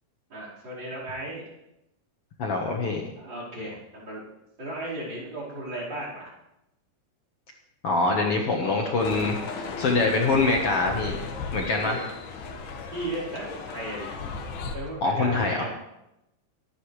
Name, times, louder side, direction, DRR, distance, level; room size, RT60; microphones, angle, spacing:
voice 1, 0.3-1.4 3.2-4.3 4.6-6.3 11.7-12.0 12.9-14.1 14.7-15.7, right 1 dB, 30° right, -5 dB, 5.2 m, -35 dB
voice 2, 2.4-3.0 7.8-12.1 15.0-15.7, left 3 dB, 55° left, 1 dB, 1.7 m, -25 dB
sound 1, 9.0-14.8, left 4 dB, 75° left, 3.4 m, -36 dB
24.0 x 11.5 x 3.3 m, 0.88 s
omnidirectional pair, 4.4 m